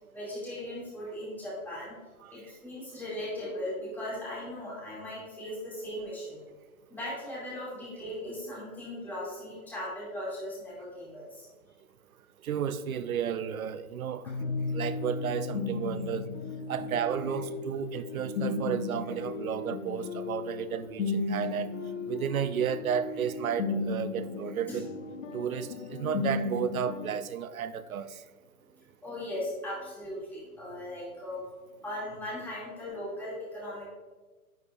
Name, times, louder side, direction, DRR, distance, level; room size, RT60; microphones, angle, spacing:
voice 1, 0.1-1.9 2.3-6.4 6.9-11.5 16.8-16.9 24.7-24.8 29.0-31.6 31.8-33.8, left 1 dB, 5° left, -8 dB, 2.5 m, -38 dB
voice 2, 12.4-14.3 14.7-16.3 16.7-21.7 22.1-24.9 25.3-28.2, right 8 dB, 65° right, 13 dB, 0.7 m, -32 dB
sound 1, 14.3-27.1, left 3 dB, 55° left, 0.9 m, -35 dB
10.5 x 6.5 x 2.5 m, 1.3 s
hypercardioid pair, 155°, 45 cm